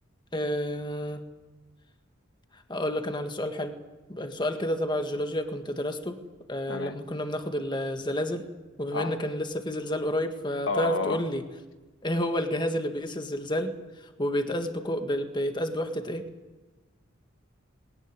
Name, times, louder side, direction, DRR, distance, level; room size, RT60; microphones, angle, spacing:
voice 1, 0.3-1.2 2.5-3.8 4.1-6.2 6.5-8.5 8.8-11.4 12.0-16.2, equal, 25° left, 6 dB, 1.8 m, -30 dB
voice 2, 10.7-11.2, left 4 dB, 75° left, 7 dB, 1.6 m, -29 dB
20.5 x 18.5 x 9.7 m, 1.2 s
head